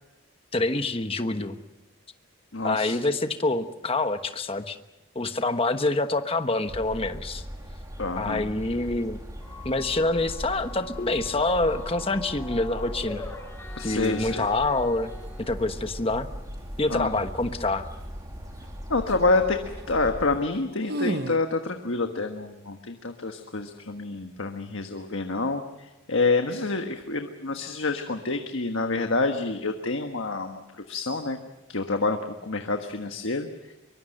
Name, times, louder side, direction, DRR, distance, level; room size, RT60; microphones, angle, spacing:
voice 1, 0.5-1.6 2.6-4.8 5.1-7.4 8.1-9.2 9.6-13.3 13.8-15.1 15.4-16.3 16.8-17.8, left 2 dB, 25° left, 8 dB, 1.2 m, -26 dB
voice 2, 2.5-3.0 8.0-8.4 13.8-14.5 16.9-17.1 18.9-19.6 19.9-25.6 26.1-30.6 30.9-31.4 31.7-33.7, left 3 dB, 70° left, 5 dB, 1.5 m, -27 dB
sound 1, 6.6-20.4, equal, 15° right, 3.0 m, -39 dB
sound 2, 9.4-15.4, left 2 dB, 10° left, 5.1 m, -43 dB
sound 3, 13.0-13.2 13.8-14.3 14.6-15.3 18.6-18.7 19.0-19.3 19.6-19.8 20.2-20.3 20.5-21.4, right 1 dB, 50° right, 1.1 m, -33 dB
23.5 x 23.5 x 6.6 m, 1.1 s
head